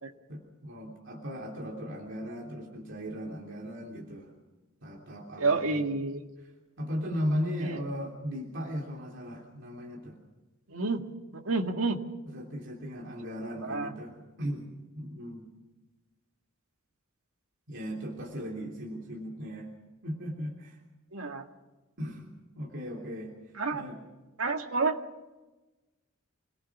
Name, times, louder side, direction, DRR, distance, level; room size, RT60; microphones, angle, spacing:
voice 1, 0.3-4.3 4.8-5.8 6.8-10.2 12.3-14.7 14.9-15.5 17.7-19.7 20.0-20.8 22.0-22.3 22.5-23.3 23.7-24.0, equal, 60° right, -1 dB, 3.3 m, -37 dB
voice 2, 5.4-6.2 7.6-7.8 10.7-12.0 13.6-13.9 21.1-21.5 23.6-23.9 24.4-25.0, right 3 dB, 85° right, 4 dB, 2.0 m, -29 dB
27.5 x 18.5 x 6.1 m, 1.1 s
head